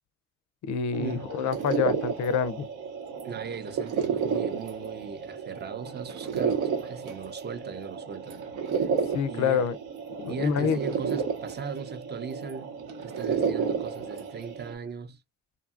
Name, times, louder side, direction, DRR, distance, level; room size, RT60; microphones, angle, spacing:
voice 1, 0.6-2.7 9.1-9.8 10.2-10.8, left 7 dB, 65° left, 0.5 m, -27 dB
sound 1, 0.9-14.7, right 6 dB, 80° right, 0.7 m, -32 dB
voice 2, 3.2-8.4 8.8-8.9 9.3-9.7 10.3-12.8 13.0-15.2, right 6 dB, 35° right, 0.5 m, -38 dB
2.7 x 2.6 x 2.4 m
cardioid pair, 90°, 30 cm